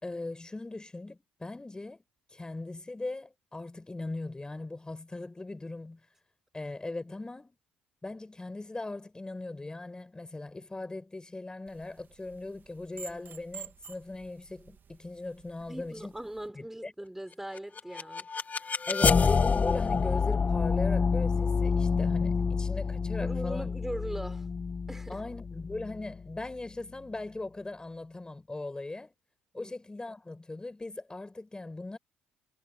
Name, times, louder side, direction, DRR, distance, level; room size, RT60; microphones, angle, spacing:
voice 1, 0.0-2.0 2.3-6.0 6.5-7.6 8.0-16.1 16.5-16.9 18.9-23.7 25.1-29.1 29.5-32.0, left 2 dB, 15° left, 5.7 m, -39 dB
sound 1, 11.7-16.5, right 6 dB, 45° right, 2.6 m, -50 dB
voice 2, 15.6-18.9 23.2-24.5 24.9-25.3 29.5-29.7, right 1 dB, 5° right, 6.3 m, -41 dB
sound 2, 17.6-26.5, left 5 dB, 35° left, 1.7 m, -28 dB
hypercardioid pair, 60°, 5 cm